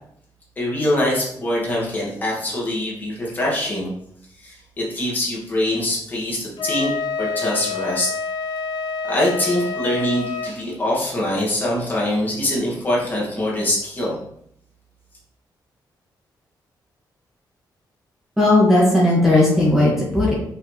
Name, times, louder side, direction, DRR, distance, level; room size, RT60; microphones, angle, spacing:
voice 1, 0.6-3.9 4.4-6.9 7.2-8.1 9.0-14.2, left 1 dB, 25° left, -5 dB, 2.1 m, -23 dB
Wind instrument woodwind instrument, 6.6-10.5, left 5 dB, 65° left, 0.7 m, -27 dB
voice 2, 18.4-20.3, left 1 dB, 5° right, -6 dB, 1.8 m, -16 dB
6.0 x 5.6 x 3.3 m, 0.70 s
wide cardioid pair, 175°, 8 cm